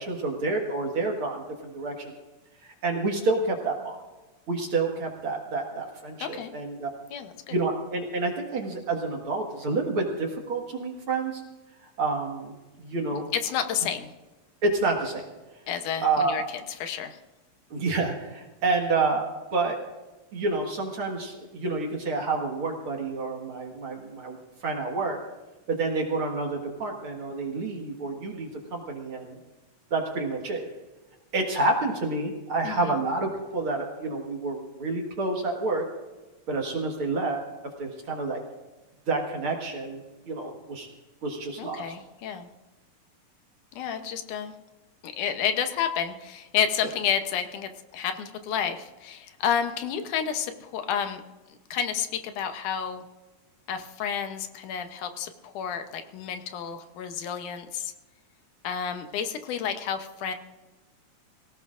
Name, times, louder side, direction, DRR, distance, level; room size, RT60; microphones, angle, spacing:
voice 1, 0.0-2.1 2.6-4.0 4.5-6.9 7.5-11.4 11.8-12.5 12.8-13.3 14.6-15.3 16.0-16.4 17.7-19.2 19.5-19.8 20.3-24.4 24.6-25.2 25.7-29.4 29.9-30.6 31.3-35.9 36.5-38.4 39.1-40.9 41.2-41.9, right 3 dB, 50° right, 0 dB, 2.2 m, -29 dB
voice 2, 6.2-6.5 7.1-7.6 13.3-14.1 15.7-17.2 32.6-33.0 41.6-42.5 43.7-44.5 45.0-51.2 51.5-53.0 53.7-57.9 58.6-60.3, left 8 dB, 85° left, 7 dB, 2.4 m, -30 dB
23.5 x 17.0 x 2.5 m, 1.1 s
omnidirectional pair, 3.5 m